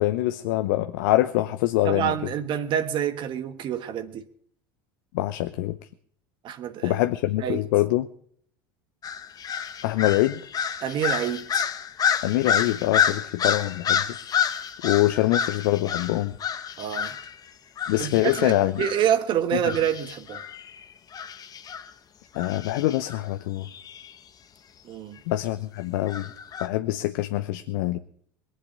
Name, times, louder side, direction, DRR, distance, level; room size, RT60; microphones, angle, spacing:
voice 1, 0.0-2.1 5.1-5.8 6.8-8.1 9.8-10.4 12.2-14.0 14.8-16.4 17.9-18.8 22.3-23.7 25.3-26.3 26.6-28.0, left 16 dB, 65° left, 0.8 m, -24 dB
voice 2, 1.8-4.3 6.4-7.0 7.4-7.6 10.8-11.6 16.8-17.2 18.0-20.4 24.8-25.2, right 9 dB, 45° right, 1.4 m, -27 dB
sound 1, 9.0-17.4 17.8-19.1 19.6-21.9 22.4-23.2 23.6-24.1 26.1-26.7, left 8 dB, 35° left, 1.2 m, -29 dB
21.5 x 8.0 x 8.1 m
hypercardioid pair, 75°, 11 cm